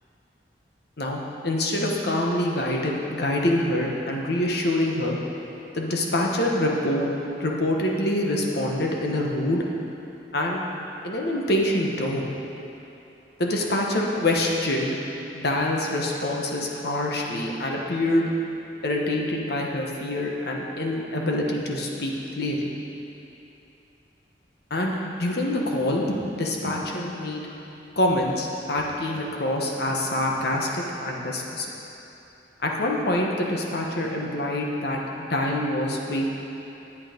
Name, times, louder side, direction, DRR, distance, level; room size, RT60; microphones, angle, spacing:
voice 1, 1.0-5.2 5.7-7.1 7.4-9.6 10.3-10.6 11.0-12.3 13.4-15.0 15.3-18.3 18.8-22.7 24.7-27.5 28.0-31.7 32.6-36.3, left 1 dB, 65° left, -1 dB, 1.3 m, -25 dB
11.0 x 8.5 x 5.2 m, 2.9 s
head